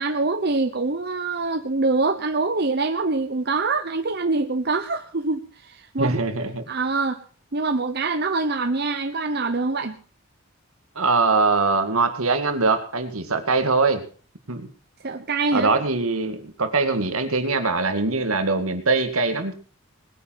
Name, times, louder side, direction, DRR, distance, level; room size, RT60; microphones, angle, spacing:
voice 1, 0.0-6.2 6.7-7.2 7.5-10.0 15.0-15.7, right 3 dB, 50° right, 7 dB, 0.9 m, -24 dB
voice 2, 6.0-6.6 11.0-14.0 14.5-14.7 15.5-19.5, right 3 dB, 80° right, 8 dB, 2.1 m, -22 dB
20.0 x 9.7 x 5.9 m, 0.41 s
head